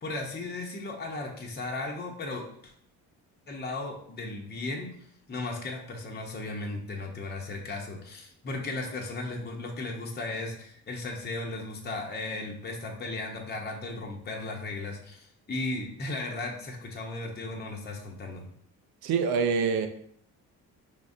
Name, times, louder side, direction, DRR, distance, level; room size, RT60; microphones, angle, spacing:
voice 1, 0.0-2.7 3.5-4.9 5.3-18.5, left 2 dB, 25° left, 0 dB, 0.9 m, -36 dB
voice 2, 19.0-19.9, right 5 dB, 80° right, 7 dB, 0.6 m, -25 dB
5.1 x 3.6 x 2.7 m, 0.66 s
cardioid pair, 80°, 37 cm